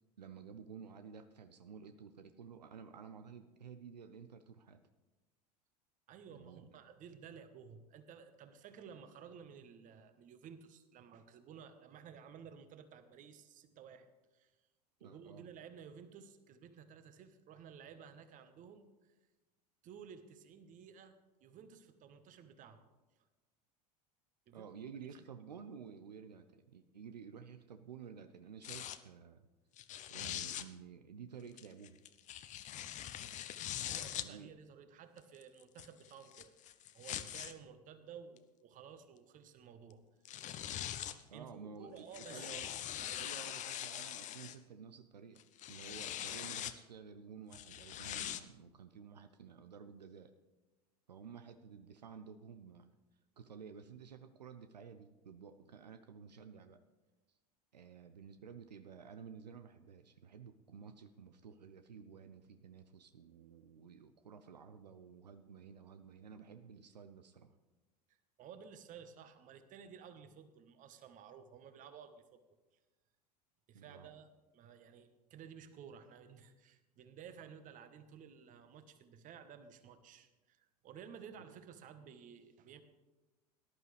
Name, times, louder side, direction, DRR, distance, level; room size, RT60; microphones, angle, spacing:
voice 1, 0.2-4.8 6.3-6.7 15.0-15.4 24.5-29.5 30.1-32.0 34.2-34.5 41.3-45.4 45.7-50.3 51.1-52.9 53.4-56.8 57.7-67.5 73.7-74.1, right 6 dB, 85° right, 9 dB, 0.6 m, -52 dB
voice 2, 6.1-14.5 15.0-19.1 19.8-22.9 24.5-24.7 25.2-25.3 33.8-36.5 36.9-40.4 41.3-42.7 43.0-43.3 68.1-72.4 73.7-74.3 74.5-82.8, right 7 dB, 40° right, 10 dB, 1.2 m, -54 dB
sound 1, 28.6-29.0 29.8-30.7 31.6-34.3 35.2-37.5 38.4-38.5 39.9-40.0 40.3-41.2 42.0-44.6 45.4-46.8 47.5-48.4, left 11 dB, 35° left, 0.7 m, -43 dB
18.0 x 11.0 x 3.3 m, 1.2 s
hypercardioid pair, 85°, 21 cm